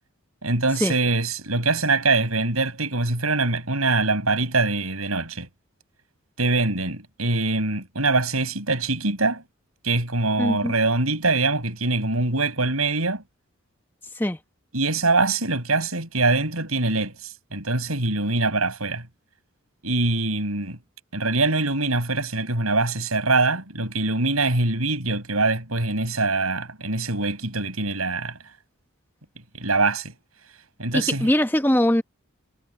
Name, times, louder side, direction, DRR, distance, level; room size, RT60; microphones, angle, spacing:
voice 1, 0.4-5.5 6.4-9.4 9.8-13.2 14.7-19.1 19.8-20.8 21.1-28.4 29.5-30.1 30.8-31.3, right 3 dB, 85° right, 6.7 m, -23 dB
voice 2, 10.4-10.7 14.2-14.4 30.9-32.0, left 1 dB, 10° left, 1.0 m, -21 dB
head